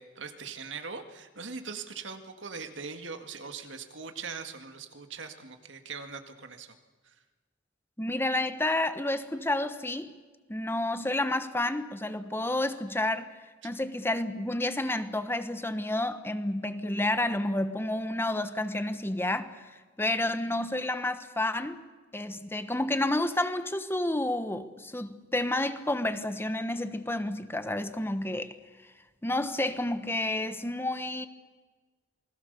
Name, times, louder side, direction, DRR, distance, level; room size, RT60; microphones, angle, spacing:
voice 1, 0.0-6.8 7.1-7.2 13.6-13.7, right 5 dB, 90° right, 2.1 m, -41 dB
voice 2, 8.0-10.1 10.5-13.3 13.6-21.8 22.1-28.5 29.2-31.3, left 1 dB, 15° left, 1.2 m, -30 dB
28.5 x 20.5 x 6.8 m
head